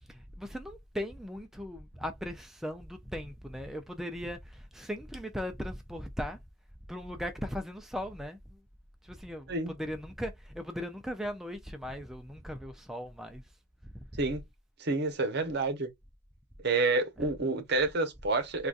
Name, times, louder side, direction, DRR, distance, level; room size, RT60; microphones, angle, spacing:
voice 1, 0.1-6.4 6.9-8.4 9.0-13.4 13.8-13.9 17.2-17.3, equal, ahead, 0.3 m, -38 dB
voice 2, 14.8-15.9 16.6-18.7, right 3 dB, 55° right, 0.8 m, -29 dB
3.9 x 2.3 x 2.3 m
head